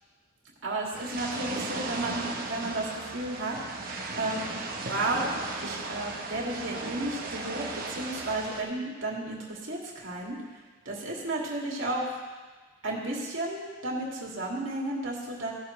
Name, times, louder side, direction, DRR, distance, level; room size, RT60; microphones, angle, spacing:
voice 1, 0.6-4.5 4.9-5.3 5.6-10.4 10.8-12.2 12.8-15.5, right 2 dB, 75° right, -4 dB, 2.4 m, -33 dB
sound 1, 0.9-8.6, right 3 dB, 45° right, 1.0 m, -36 dB
16.5 x 7.3 x 3.3 m, 1.4 s
head